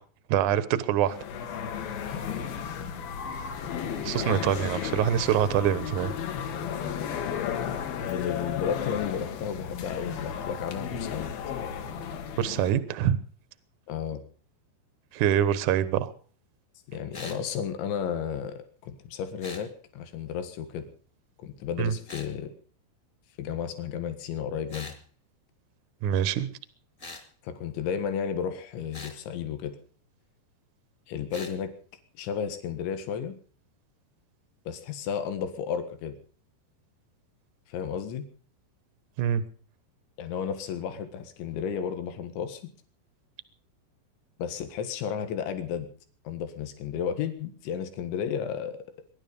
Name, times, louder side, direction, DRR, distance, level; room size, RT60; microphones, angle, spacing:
voice 1, 0.3-1.2 4.0-6.1 12.4-13.2 15.1-16.1 21.8-21.9 26.0-26.5 39.2-39.4, right 10 dB, 70° right, 14 dB, 2.0 m, -25 dB
sound 1, 1.1-12.7, left 7 dB, 65° left, 3.2 m, -34 dB
voice 2, 7.3-7.8 8.1-11.3 13.9-14.2 16.9-20.9 21.4-22.5 23.4-25.0 27.4-29.8 31.1-31.7 32.2-33.4 34.7-36.2 37.7-38.3 40.2-42.7 44.4-45.9 46.3-48.8, left 7 dB, 90° left, 9 dB, 4.0 m, -33 dB
sound 2, 17.1-17.4 19.4-19.7 22.1-22.3 24.7-25.0 27.0-27.3 28.9-29.2 31.3-31.5, left 3 dB, 25° left, 1.8 m, -42 dB
23.0 x 11.5 x 5.3 m, 0.42 s
omnidirectional pair, 5.2 m